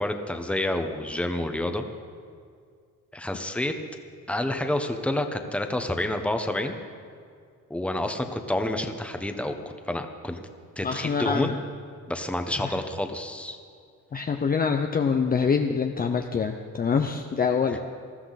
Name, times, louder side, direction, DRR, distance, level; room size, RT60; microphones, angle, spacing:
voice 1, 0.0-1.8 3.1-3.7 4.3-6.8 7.7-9.5 9.9-10.4 10.8-11.6 12.1-13.6 17.7-17.8, left 1 dB, 5° left, 6 dB, 1.1 m, -28 dB
voice 2, 10.8-11.6 12.6-12.8 14.1-17.8, left 6 dB, 25° left, 5 dB, 0.6 m, -25 dB
20.0 x 14.0 x 4.1 m, 2.2 s
cardioid pair, 120°, 33 cm